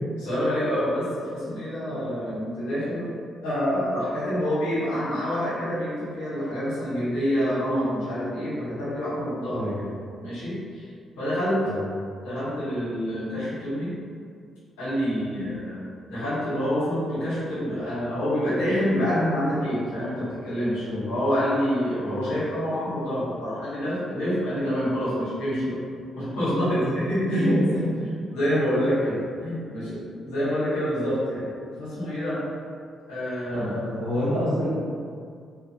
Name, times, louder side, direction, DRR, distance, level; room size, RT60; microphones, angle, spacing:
voice 1, 0.2-3.1 3.4-9.9 10.2-10.8 11.2-11.6 12.2-13.9 14.8-25.8 26.1-31.5 31.8-32.4 33.1-34.0, equal, 80° left, -11 dB, 1.2 m, -27 dB
voice 2, 27.2-27.6 33.5-34.7, equal, 90° right, -12 dB, 1.2 m, -27 dB
2.8 x 2.3 x 2.7 m, 2.2 s
hypercardioid pair, 45°, 0 cm